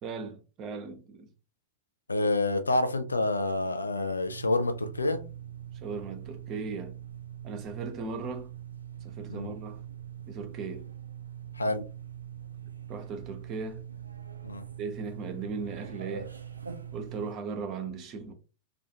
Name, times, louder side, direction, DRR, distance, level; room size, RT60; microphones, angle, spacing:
voice 1, 0.0-1.3 5.7-7.0 7.4-8.5 9.0-9.8 10.3-10.9 12.9-13.8 14.8-16.3 16.9-18.3, right 4 dB, 35° right, 0.6 m, -37 dB
voice 2, 2.1-5.2 9.3-9.5 11.6-11.8 14.4-14.6, left 2 dB, 80° left, 0.4 m, -28 dB
sound 1, 4.3-17.3, right 9 dB, 80° right, 0.3 m, -43 dB
2.4 x 2.3 x 2.7 m
figure-of-eight pair, 90°, 0 cm